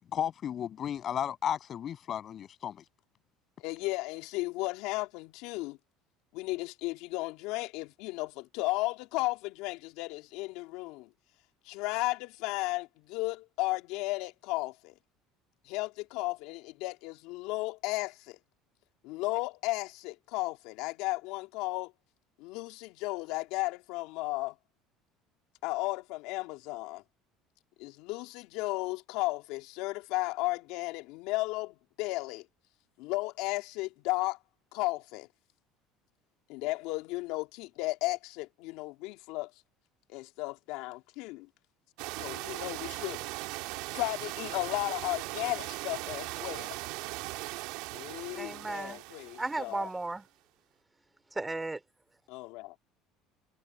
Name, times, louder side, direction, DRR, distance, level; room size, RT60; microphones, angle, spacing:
voice 1, 0.1-2.8, left 9 dB, 45° left, 6.8 m, -34 dB
voice 2, 3.6-5.8 6.3-11.1 11.6-14.9 15.6-18.4 19.0-21.9 22.4-24.6 25.6-27.0 27.8-32.5 33.0-34.4 34.7-35.3 36.5-39.5 40.1-41.5 42.2-43.2 43.9-46.8 47.9-49.9 52.3-52.7, left 21 dB, 75° left, 2.5 m, -34 dB
sound 1, 42.0-50.0, right 22 dB, 75° right, 2.0 m, -39 dB
voice 3, 48.4-49.0 49.4-50.3 51.3-51.8, right 2 dB, 15° right, 3.4 m, -35 dB
supercardioid pair, 90°, 0 cm